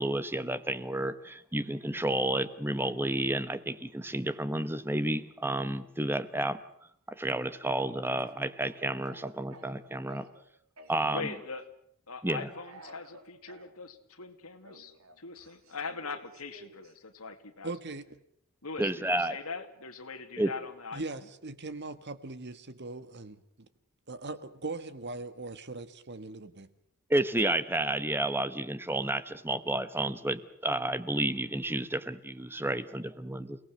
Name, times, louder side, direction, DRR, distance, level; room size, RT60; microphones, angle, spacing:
voice 1, 0.0-6.6 7.1-10.3 10.9-11.3 12.2-12.5 18.8-19.4 20.4-20.5 27.1-33.6, right 1 dB, 10° right, 13 dB, 1.1 m, -31 dB
Speech / Cough, 8.2-10.4 10.8-11.6 12.5-13.7 14.6-16.9, right 1 dB, 70° right, 3.3 m, -53 dB
voice 2, 11.1-11.6 12.1-17.7 18.6-21.3, left 4 dB, 80° left, 8 dB, 2.5 m, -41 dB
voice 3, 17.6-18.1 20.9-23.7 24.1-26.7, right 3 dB, 50° right, 12 dB, 1.7 m, -40 dB
29.5 x 18.5 x 7.7 m, 0.69 s
head